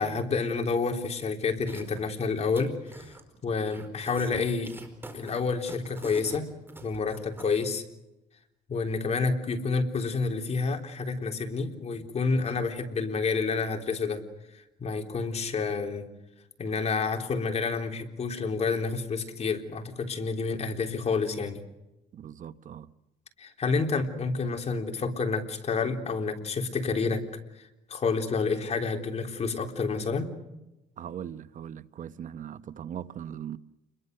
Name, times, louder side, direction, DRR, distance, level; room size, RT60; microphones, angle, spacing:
voice 1, 0.0-3.1 3.4-4.7 5.1-6.5 6.8-7.8 8.7-14.2 14.5-16.0 16.6-21.6 23.4-27.2 27.6-30.3, left 4 dB, 40° left, 3.7 m, -29 dB
sound 1, 1.7-2.1 2.4-3.2 3.5-7.6, right 2 dB, 15° right, 4.7 m, -45 dB
voice 2, 22.1-22.9 31.0-33.6, right 9 dB, 50° right, 0.9 m, -40 dB
29.5 x 22.0 x 6.7 m
cardioid pair, 110°, 17 cm